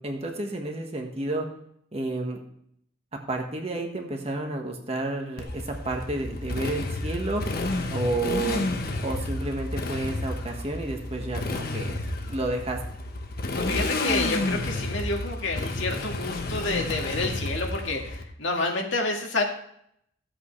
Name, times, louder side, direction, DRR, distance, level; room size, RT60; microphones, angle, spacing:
voice 1, 0.0-1.5 1.9-2.4 3.3-7.4 7.9-8.6 9.0-12.0 12.3-12.8, right 2 dB, 30° right, 2 dB, 1.5 m, -30 dB
Motorcycle, 5.4-18.2, left 2 dB, 45° left, 1.1 m, -31 dB
voice 2, 13.6-19.4, left 2 dB, 65° left, 1 dB, 1.9 m, -29 dB
14.0 x 8.1 x 3.2 m, 0.70 s
head